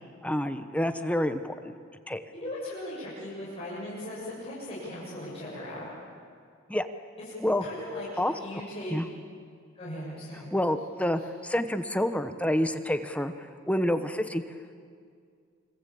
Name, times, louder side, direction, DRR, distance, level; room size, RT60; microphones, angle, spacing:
voice 1, 0.2-1.5 2.1-2.2 6.7-6.9 7.4-7.6 8.2-8.3 8.9-9.1 10.5-13.3 13.7-14.4, left 1 dB, 5° left, 9 dB, 1.0 m, -28 dB
voice 2, 2.3-5.9 7.6-9.0 9.8-10.5, left 1 dB, 30° left, -8 dB, 7.5 m, -38 dB
26.5 x 25.0 x 8.5 m, 2.2 s
head